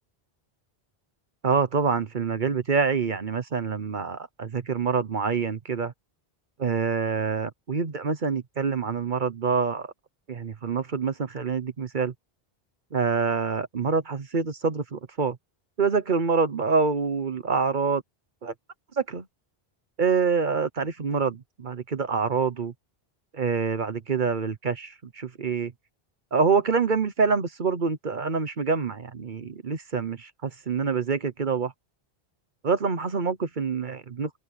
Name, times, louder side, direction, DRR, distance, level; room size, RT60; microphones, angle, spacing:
voice 1, 1.4-5.9 6.6-9.9 10.3-12.1 12.9-15.4 15.8-18.0 18.4-18.5 19.0-19.2 20.0-22.7 23.3-25.7 26.3-31.7 32.6-34.3, right 5 dB, 50° right, 1.1 m, -26 dB
omnidirectional pair, 1.0 m